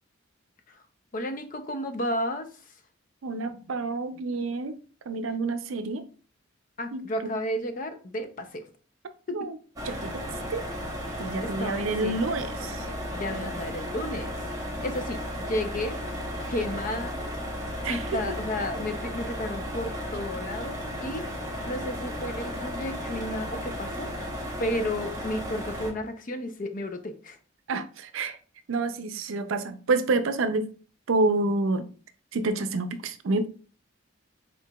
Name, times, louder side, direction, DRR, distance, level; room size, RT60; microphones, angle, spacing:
voice 1, 1.1-2.5 6.8-8.7 9.3-9.5 11.4-12.2 13.1-14.4 14.6-16.0 16.5-17.2 17.9-21.3 21.6-24.2 24.6-27.4, left 1 dB, 40° left, 0.5 m, -32 dB
voice 2, 3.2-4.7 5.1-6.0 6.9-7.0 9.3-9.6 9.8-10.2 10.5-10.6 11.2-12.9 13.3-13.5 17.8-18.2 27.7-28.4 28.7-30.7 31.1-31.9 32.3-33.5, right 3 dB, 80° right, 0.5 m, -28 dB
sound 1, 9.8-25.9, equal, 20° right, 0.9 m, -34 dB
4.6 x 3.8 x 2.3 m
head